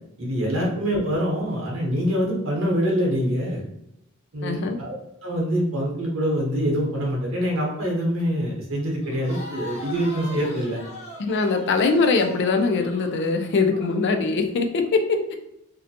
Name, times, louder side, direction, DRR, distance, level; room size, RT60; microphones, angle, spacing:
voice 1, 0.2-3.6 4.3-4.9 5.2-10.8, equal, 65° right, -2 dB, 0.9 m, -25 dB
voice 2, 4.4-4.8 11.2-15.3, left 4 dB, 55° left, 6 dB, 0.4 m, -22 dB
Crowd, 9.0-14.0, left 1 dB, 35° left, 0.7 m, -41 dB
2.6 x 2.1 x 2.7 m, 0.81 s
head